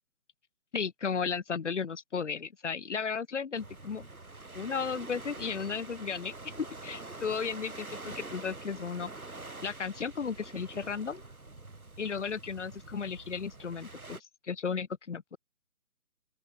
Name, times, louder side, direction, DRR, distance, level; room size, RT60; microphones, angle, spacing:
voice 1, 0.7-4.1 4.5-9.1 9.6-11.2 12.0-14.2 14.4-15.4, left 6 dB, 55° left, 7.1 m, -34 dB
sound 1, 3.5-14.2, right 2 dB, 80° right, 5.5 m, -46 dB
open air
figure-of-eight pair, 145°, 42 cm